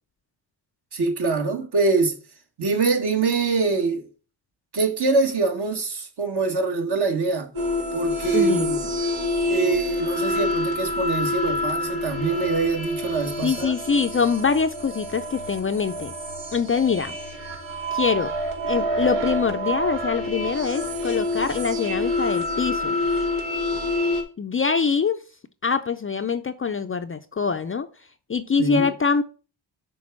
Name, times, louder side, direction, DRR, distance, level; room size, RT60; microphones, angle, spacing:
voice 1, 0.9-2.1 2.6-4.1 4.7-7.5 7.9-8.8 9.5-13.7 28.6-28.9, right 4 dB, 55° right, 1.6 m, -24 dB
sound 1, 7.6-24.2, left 1 dB, 80° right, 1.7 m, -27 dB
voice 2, 8.3-8.7 13.4-16.1 16.5-17.2 17.9-18.3 18.7-23.0 24.4-25.2 25.6-27.9 28.3-29.2, left 5 dB, 30° left, 0.4 m, -24 dB
6.1 x 3.5 x 6.0 m
cardioid pair, 65°, 47 cm